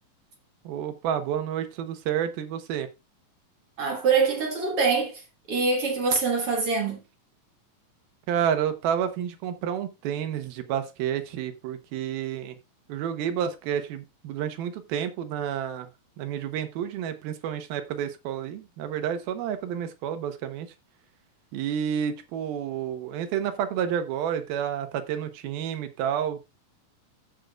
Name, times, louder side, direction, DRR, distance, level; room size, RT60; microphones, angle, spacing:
voice 1, 0.6-2.9 8.3-12.6 12.9-15.9 16.2-20.7 21.5-26.4, right 9 dB, 90° right, 3.0 m, -30 dB
voice 2, 3.8-5.2 5.5-7.0, right 4 dB, 50° right, 2.1 m, -24 dB
14.5 x 6.6 x 2.4 m
omnidirectional pair, 4.2 m